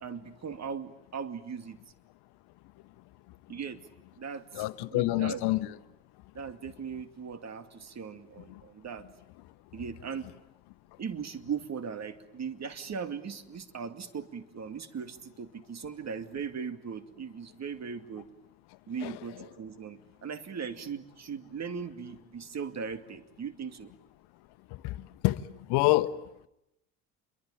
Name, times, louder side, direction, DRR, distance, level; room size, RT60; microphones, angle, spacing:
voice 1, 0.0-1.8 3.5-3.8 4.2-5.5 6.3-9.1 9.7-10.3 11.0-18.3 18.9-23.9, right 6 dB, 40° right, 2.4 m, -39 dB
voice 2, 4.5-5.6 19.0-19.1 24.8-24.9 25.2-25.4 25.7-26.1, left 19 dB, 65° left, 1.2 m, -26 dB
28.0 x 23.0 x 8.9 m
hypercardioid pair, 70°, 42 cm